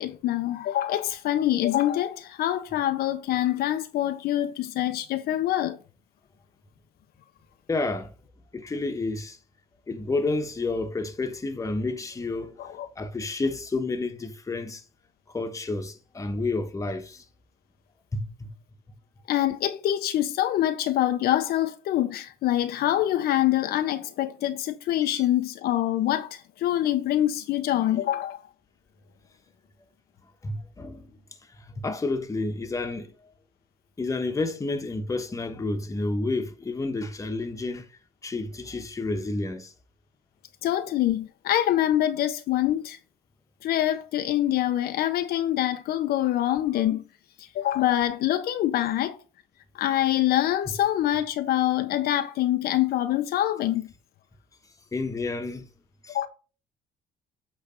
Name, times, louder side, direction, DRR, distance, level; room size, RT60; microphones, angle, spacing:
voice 1, 0.0-5.8 12.6-12.9 19.3-28.4 40.6-43.0 43.6-47.0 47.4-49.2 49.7-53.9 56.1-56.3, left 13 dB, 70° left, 0.6 m, -25 dB
voice 2, 7.7-8.1 8.5-9.4 9.9-14.8 15.3-17.2 18.1-18.5 25.1-25.2 30.4-31.2 31.5-33.1 34.0-37.9 38.2-39.7 54.9-55.7 56.0-56.2, left 3 dB, 20° left, 1.1 m, -30 dB
8.1 x 3.3 x 5.0 m
cardioid pair, 110°, 17 cm